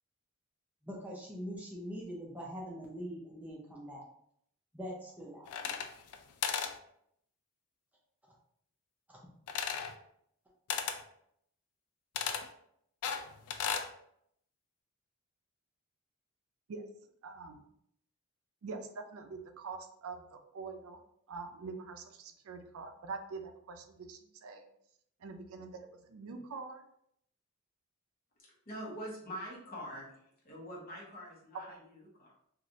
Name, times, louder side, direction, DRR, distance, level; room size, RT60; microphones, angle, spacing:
voice 1, 0.8-4.1 4.7-5.8 9.1-9.2, equal, 5° right, -3 dB, 0.4 m, -43 dB
sound 1, 5.5-6.2 6.4-6.8 9.5-9.9 10.7-11.0 12.2-12.5 13.0-13.9, left 7 dB, 85° left, 0.3 m, -35 dB
voice 2, 17.2-17.6 18.6-21.0 21.3-24.6 25.2-25.8 26.1-26.8, right 4 dB, 75° right, 6 dB, 0.4 m, -44 dB
voice 3, 28.4-30.1 30.4-32.3, equal, 40° left, -4 dB, 1.0 m, -44 dB
3.0 x 2.4 x 2.6 m, 0.71 s
head